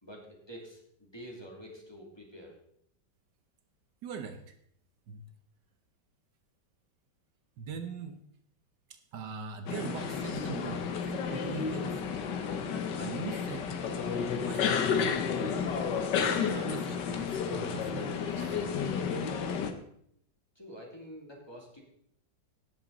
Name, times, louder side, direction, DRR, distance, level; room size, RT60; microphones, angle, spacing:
voice 1, 0.0-2.5 20.6-21.8, equal, 15° left, -1 dB, 2.5 m, -47 dB
voice 2, 4.0-4.6 5.1-5.2 7.6-8.2 8.9-12.2 13.0-13.7 14.4-15.5 16.2-18.8, right 7 dB, 70° right, 8 dB, 1.5 m, -42 dB
sound 1, 9.7-19.7, left 6 dB, 70° left, 1.6 m, -31 dB
18.0 x 7.3 x 4.0 m, 0.69 s
omnidirectional pair, 2.0 m